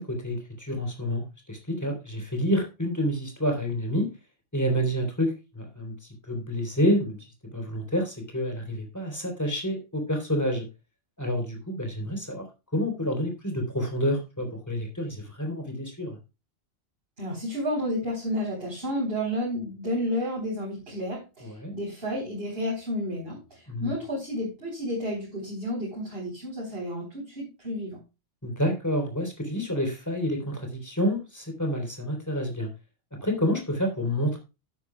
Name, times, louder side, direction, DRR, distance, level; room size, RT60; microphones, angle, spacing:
voice 1, 0.0-4.1 4.5-5.9 6.3-7.2 7.5-10.6 11.2-12.5 12.7-16.2 21.4-21.7 23.7-23.9 28.4-32.7 33.2-34.4, equal, 15° left, 3 dB, 3.8 m, -28 dB
voice 2, 17.2-28.0, equal, 60° right, -4 dB, 4.3 m, -31 dB
12.0 x 10.5 x 2.3 m, 0.28 s
omnidirectional pair, 1.1 m